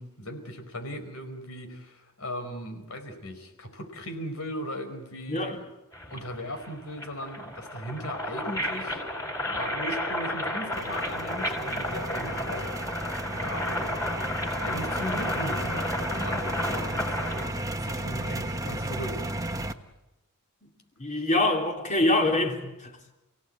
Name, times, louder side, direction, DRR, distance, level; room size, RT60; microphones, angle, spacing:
voice 1, 0.0-5.6 6.1-9.0 9.4-13.1 13.4-13.7 14.6-17.4 17.8-19.2 21.1-21.2, equal, 70° left, 4.8 m, -38 dB
sound 1, 5.9-17.4, left 1 dB, 15° left, 5.6 m, -32 dB
Noisy vending machine, 10.7-19.7, right 1 dB, 15° right, 1.2 m, -34 dB
voice 2, 21.0-23.1, left 2 dB, 35° left, 3.6 m, -25 dB
30.0 x 17.0 x 9.5 m
head